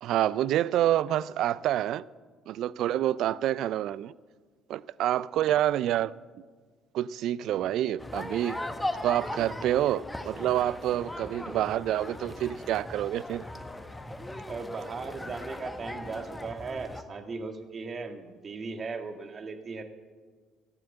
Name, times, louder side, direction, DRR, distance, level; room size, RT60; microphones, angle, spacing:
voice 1, 0.0-2.0 2.5-4.1 4.7-6.1 6.9-8.6 9.0-13.4, right 12 dB, 65° right, 0.4 m, -27 dB
sound 1, 8.0-17.0, left 1 dB, 10° left, 1.4 m, -38 dB
voice 2, 14.4-19.8, right 4 dB, 45° right, 1.8 m, -37 dB
14.5 x 12.0 x 7.7 m
hypercardioid pair, 55°, 0 cm